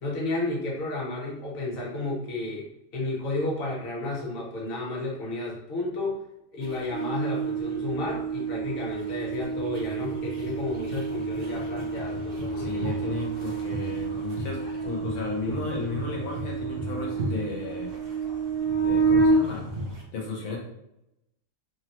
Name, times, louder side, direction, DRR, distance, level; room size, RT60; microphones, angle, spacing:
voice 1, 0.0-2.7 2.9-6.2 6.5-12.8, left 2 dB, 50° left, -4 dB, 1.0 m, -32 dB
sound 1, 6.6-20.0, right 3 dB, 50° right, 0.8 m, -29 dB
voice 2, 12.6-17.9 18.8-19.7 20.1-20.6, left 3 dB, 85° left, -1 dB, 1.1 m, -34 dB
3.2 x 2.1 x 2.9 m, 0.87 s
omnidirectional pair, 1.4 m